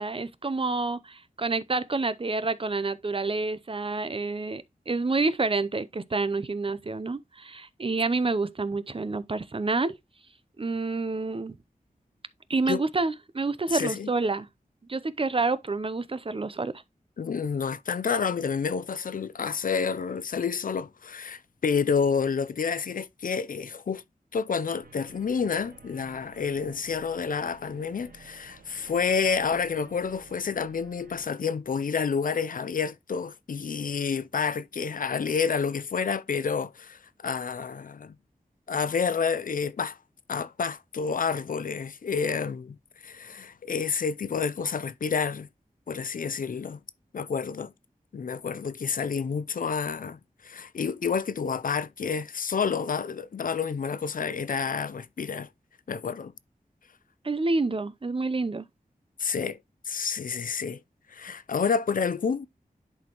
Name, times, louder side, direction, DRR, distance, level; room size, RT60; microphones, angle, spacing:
voice 1, 0.0-10.0 10.6-11.6 12.5-14.5 14.9-16.8 57.2-58.7, right 3 dB, 35° right, 0.6 m, -28 dB
voice 2, 13.7-14.1 17.2-24.0 24.3-38.2 38.7-40.0 40.3-42.8 43.0-45.5 45.9-46.8 47.1-47.7 48.1-55.5 55.9-56.3 59.2-59.6 59.9-60.8 61.1-62.5, left 6 dB, 65° left, 0.5 m, -29 dB
sound 1, 24.8-31.3, right 5 dB, 75° right, 1.2 m, -53 dB
10.5 x 4.3 x 3.0 m
wide cardioid pair, 80°, 15 cm